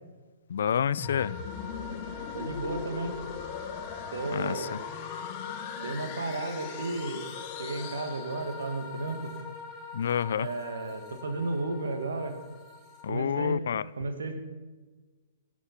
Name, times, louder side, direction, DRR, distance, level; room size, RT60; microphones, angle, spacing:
voice 1, 0.5-1.3 4.3-4.6 9.9-10.5 13.0-13.8, left 8 dB, 70° left, 0.4 m, -28 dB
sound 1, 1.0-8.9, left 7 dB, 40° left, 1.3 m, -40 dB
sound 2, 1.0-13.1, left 5 dB, 15° left, 3.0 m, -43 dB
voice 2, 2.3-3.2 4.1-4.8 5.8-7.2 7.5-9.3 10.3-12.3 13.1-13.6 14.0-14.4, right 3 dB, 80° right, 1.7 m, -33 dB
11.5 x 8.3 x 5.9 m
hypercardioid pair, 130°, 0 cm